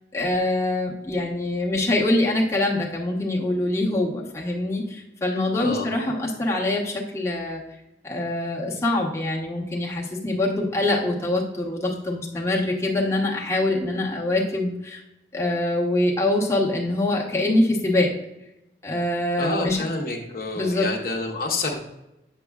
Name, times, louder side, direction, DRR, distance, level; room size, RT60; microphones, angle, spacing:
voice 1, 0.1-7.6 8.0-15.0 15.3-18.1 18.8-19.8 20.6-20.9, left 1 dB, 15° left, -3 dB, 0.9 m, -24 dB
voice 2, 5.5-5.9 19.4-21.8, left 3 dB, 50° left, 1 dB, 0.8 m, -28 dB
8.1 x 6.7 x 2.3 m, 0.90 s
head